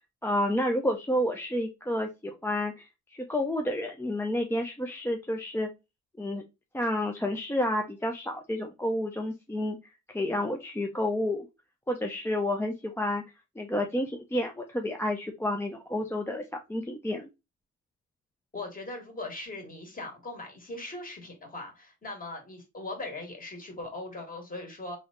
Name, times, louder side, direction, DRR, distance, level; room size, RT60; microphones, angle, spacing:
voice 1, 0.2-2.9 3.1-5.7 6.2-6.4 6.7-9.8 10.1-11.5 11.9-13.2 13.6-16.4 16.7-17.3, left 1 dB, 10° left, 2 dB, 0.5 m, -30 dB
voice 2, 18.5-25.0, left 2 dB, 30° left, 1 dB, 1.8 m, -39 dB
3.3 x 2.7 x 3.7 m, 0.25 s
cardioid pair, 90°, 30 cm